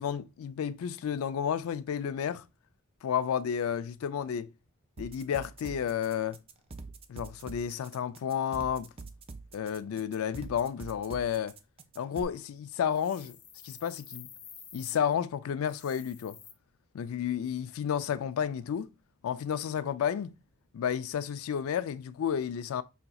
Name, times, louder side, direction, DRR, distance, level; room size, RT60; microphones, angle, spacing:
voice 1, 0.0-2.4 3.0-4.5 5.0-6.4 7.1-8.9 9.5-11.6 12.0-13.4 13.6-14.3 14.7-16.4 16.9-18.9 19.2-20.4 20.7-22.8, left 8 dB, 85° left, 0.3 m, -31 dB
sound 1, 5.0-12.2, right 3 dB, 25° right, 0.4 m, -45 dB
sound 2, 12.9-15.0 15.6-16.5, left 8 dB, 40° left, 0.6 m, -50 dB
5.1 x 2.8 x 2.3 m
head